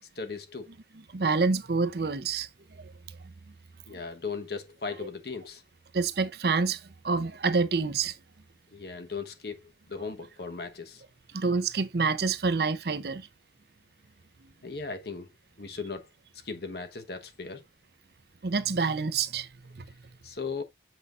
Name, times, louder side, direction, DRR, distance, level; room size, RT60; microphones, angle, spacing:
voice 1, 0.2-0.7 3.9-5.6 8.7-9.6 9.9-11.0 14.6-15.3 15.6-16.1 16.4-17.6 20.2-20.6, left 4 dB, 60° left, 1.2 m, -37 dB
voice 2, 1.1-2.5 5.9-8.1 11.3-13.3 18.4-19.5, right 4 dB, 60° right, 0.7 m, -27 dB
7.9 x 5.5 x 2.5 m
head